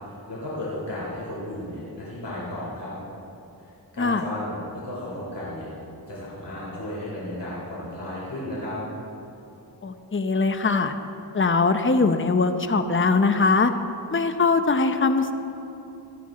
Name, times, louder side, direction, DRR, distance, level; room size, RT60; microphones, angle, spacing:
voice 1, 0.3-2.9 3.6-5.7 6.1-8.8, left 1 dB, 70° left, -7 dB, 3.3 m, -34 dB
voice 2, 9.8-10.9 11.3-13.7 14.1-15.3, left 4 dB, 30° left, 8 dB, 0.8 m, -21 dB
17.5 x 12.5 x 3.8 m, 2.9 s
cardioid pair, 40°, 42 cm